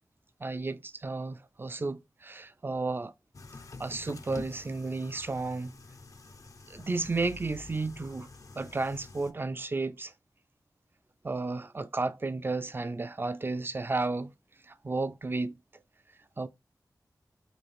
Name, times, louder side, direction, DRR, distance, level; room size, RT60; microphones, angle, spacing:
voice 1, 0.4-3.1 3.8-5.7 6.7-8.3 8.6-10.1 11.2-14.3 14.8-15.5 16.4-16.5, right 3 dB, 30° right, 0.3 m, -32 dB
sound 1, 3.3-9.3, left 3 dB, 50° left, 0.4 m, -47 dB
3.8 x 2.4 x 3.2 m
wide cardioid pair, 65°, 7 cm